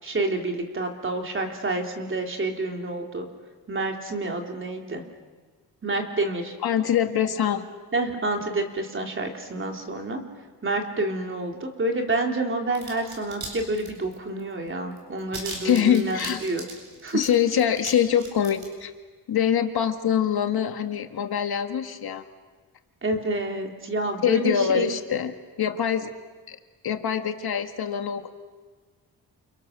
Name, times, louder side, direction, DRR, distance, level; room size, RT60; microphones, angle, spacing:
voice 1, 0.0-3.3 3.7-5.0 5.8-6.5 7.9-10.2 10.6-16.6 17.0-17.2 23.0-24.9, right 2 dB, 30° right, 2 dB, 3.3 m, -28 dB
voice 2, 6.6-7.6 15.6-16.4 17.1-18.9 19.3-22.2 24.2-25.3 25.6-26.1 26.5-26.6 26.8-28.3, left 9 dB, 65° left, 6 dB, 1.8 m, -24 dB
sound 1, 12.7-13.5 13.7-14.4 14.7-14.8 15.0-17.9 18.2-18.6, right 3 dB, 65° right, 8.0 m, -37 dB
29.5 x 29.0 x 6.7 m, 1.4 s
wide cardioid pair, 170°, 40 cm